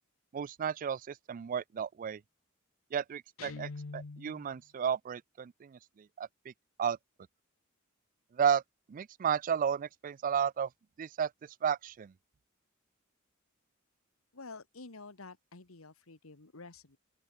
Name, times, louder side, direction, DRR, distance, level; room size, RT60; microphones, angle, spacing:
voice 1, 0.3-2.2 2.9-5.8 6.2-6.3 6.8-7.0 8.4-8.6 8.9-10.7 11.0-11.3 11.6-12.1, right 8 dB, 40° right, 0.3 m, -32 dB
Guitar, 3.4-4.5, left 3 dB, 70° left, 0.8 m, -44 dB
voice 2, 14.3-17.0, left 3 dB, 85° left, 1.8 m, -49 dB
open air
head